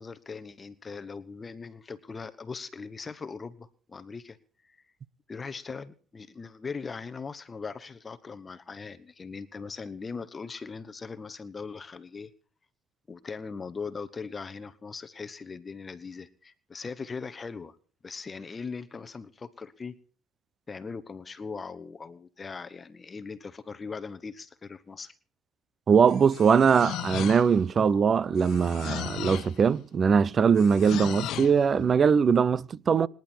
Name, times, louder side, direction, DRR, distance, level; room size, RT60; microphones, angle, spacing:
voice 1, 0.0-4.4 4.6-4.9 5.3-12.3 13.1-17.8 18.0-20.0 20.7-25.1, left 5 dB, 25° left, 1.1 m, -40 dB
voice 2, 25.9-33.1, right 6 dB, 35° right, 0.7 m, -21 dB
sound 1, 26.1-27.7 28.4-29.6 30.6-31.6, left 12 dB, 60° left, 1.2 m, -36 dB
26.0 x 10.5 x 4.5 m
supercardioid pair, 105°, 0 cm